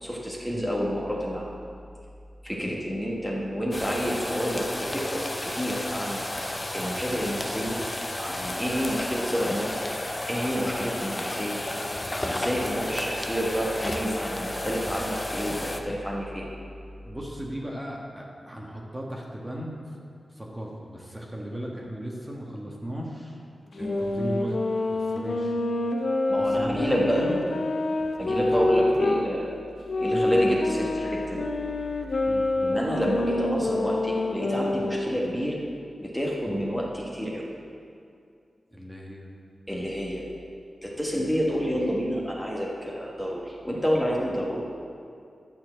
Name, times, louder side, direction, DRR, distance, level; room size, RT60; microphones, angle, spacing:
voice 1, 0.0-1.4 2.4-7.8 8.2-9.8 10.3-11.6 12.2-16.5 23.8-24.0 26.3-27.3 28.2-29.6 30.0-31.4 32.6-35.6 36.0-37.5 39.7-40.2 40.8-44.6, equal, ahead, -4 dB, 1.4 m, -29 dB
sound 1, 3.7-15.8, left 1 dB, 20° left, 0.7 m, -32 dB
voice 2, 17.0-19.9 20.3-23.4 23.8-24.6 24.9-25.5 26.4-27.4 28.3-28.9 30.1-30.3 32.2-32.5 38.7-39.3, equal, 15° right, -2 dB, 1.4 m, -36 dB
sound 2, 23.7-29.2 29.9-35.1, left 2 dB, 65° left, 0.9 m, -27 dB
11.5 x 4.4 x 7.6 m, 2.4 s
wide cardioid pair, 95°, 0 cm